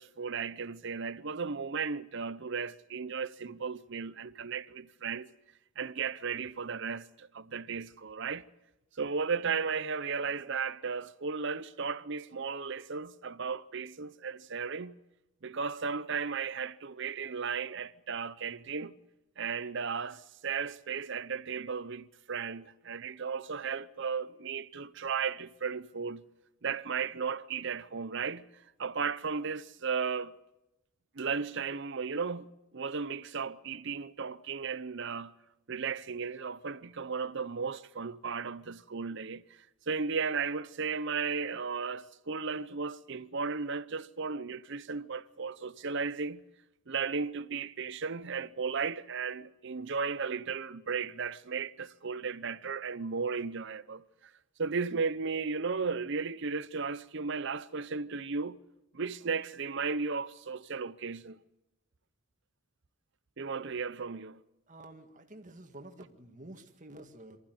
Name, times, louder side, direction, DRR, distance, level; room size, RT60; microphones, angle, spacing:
voice 1, 0.0-5.3 5.8-8.4 9.0-15.0 15.4-19.0 19.4-26.2 26.6-28.5 28.8-30.3 31.1-35.3 35.7-46.4 46.9-54.0 54.6-58.6 58.9-61.4 63.4-64.4, right 5 dB, 55° right, 0.7 m, -35 dB
voice 2, 64.7-67.4, right 1 dB, 35° right, 2.0 m, -50 dB
23.5 x 14.5 x 9.4 m
head